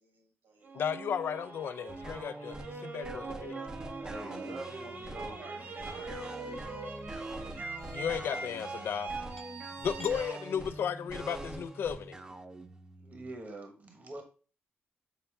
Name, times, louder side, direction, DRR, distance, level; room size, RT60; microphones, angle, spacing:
voice 1, 0.0-0.7 3.6-3.7 4.0-7.2, right 3 dB, 75° right, 2.8 m, -51 dB
sound 1, 0.6-11.6, right 3 dB, 60° right, 1.3 m, -43 dB
voice 2, 0.7-3.6 7.9-9.1 9.8-12.2, left 7 dB, 70° left, 0.4 m, -34 dB
sound 2, 1.9-13.3, right 2 dB, 20° right, 0.6 m, -44 dB
voice 3, 4.0-5.7 6.0-6.1 13.0-14.2, right 2 dB, 40° right, 1.2 m, -45 dB
sound 3, 6.2-7.4 8.1-8.3 9.0-9.1 9.4-9.7 10.0-10.2 10.6-11.0, left 1 dB, 10° left, 0.9 m, -53 dB
7.0 x 4.1 x 3.4 m
cardioid pair, 115°, 4 cm